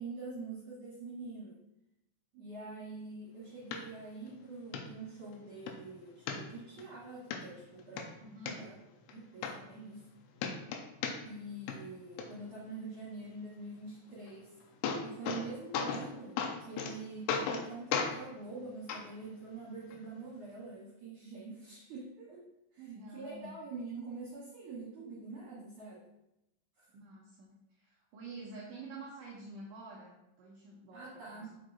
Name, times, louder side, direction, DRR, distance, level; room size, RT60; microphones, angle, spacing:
voice 1, 0.0-1.5 2.3-8.1 8.4-8.7 9.0-10.0 11.2-14.5 15.0-22.4 22.7-26.0 26.8-26.9 30.9-31.5, right 3 dB, 60° right, -7 dB, 2.4 m, -45 dB
sound 1, 3.7-3.8 4.3-4.4 4.7-4.8 5.3-5.8 6.3-6.9 7.3-7.4 7.8-8.5 9.1-9.2 9.4-10.1 10.4-11.4 11.7-12.2 14.3-14.4 14.6-15.5 15.7-16.1 16.4-16.9 17.3-17.7 17.9-18.1 18.9-19.0 19.9-20.0, left 6 dB, 85° left, 2.8 m, -35 dB
voice 2, 8.2-8.6 22.8-23.5 26.9-31.5, right 3 dB, 85° right, -3 dB, 1.8 m, -49 dB
6.4 x 4.6 x 4.0 m, 0.87 s
omnidirectional pair, 5.0 m